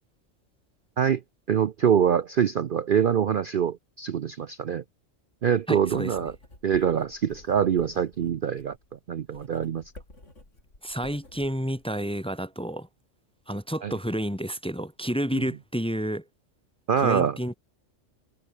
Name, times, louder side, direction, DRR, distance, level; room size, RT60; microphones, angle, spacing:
voice 1, 1.5-4.8 5.4-6.3 6.6-8.8 9.1-9.8 13.8-13.9 16.9-17.4, right 8 dB, 50° right, 0.7 m, -24 dB
voice 2, 5.7-6.2 10.8-12.9 13.5-16.2 17.0-17.6, equal, 5° left, 1.0 m, -30 dB
Writing, 5.8-11.8, left 2 dB, 70° left, 7.0 m, -51 dB
omnidirectional pair, 1.3 m